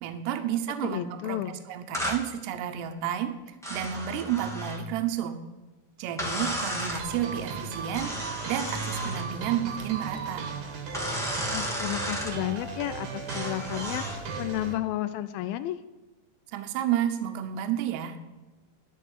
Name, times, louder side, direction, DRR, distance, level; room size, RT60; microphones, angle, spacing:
voice 1, 0.0-5.4 6.0-10.5 16.5-18.2, right 10 dB, 85° right, 7 dB, 3.0 m, -31 dB
voice 2, 0.8-1.6 11.5-15.8, left 14 dB, 85° left, 12 dB, 2.1 m, -32 dB
sound 1, 1.9-2.2 3.6-4.8 6.2-7.1 7.9-9.3 10.9-12.4 13.3-14.2, equal, ahead, 1.3 m, -33 dB
sound 2, 7.0-14.7, right 5 dB, 55° right, 2.7 m, -37 dB
12.0 x 7.0 x 9.8 m, 1.2 s
omnidirectional pair, 4.8 m